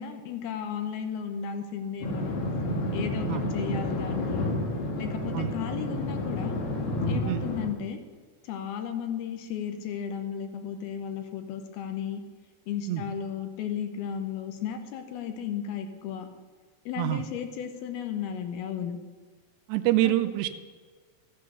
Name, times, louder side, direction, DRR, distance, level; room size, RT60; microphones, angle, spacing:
voice 1, 0.0-2.4 2.9-4.5 5.0-6.6 7.1-8.0 8.4-12.2 12.7-16.3 16.9-19.0 20.0-20.2, left 8 dB, 75° left, 6 dB, 2.7 m, -34 dB
sound 1, 2.0-7.7, left 1 dB, 55° left, 1.7 m, -30 dB
voice 2, 19.7-20.5, right 15 dB, 90° right, 9 dB, 2.8 m, -26 dB
14.0 x 8.6 x 6.7 m, 1.5 s
omnidirectional pair, 4.8 m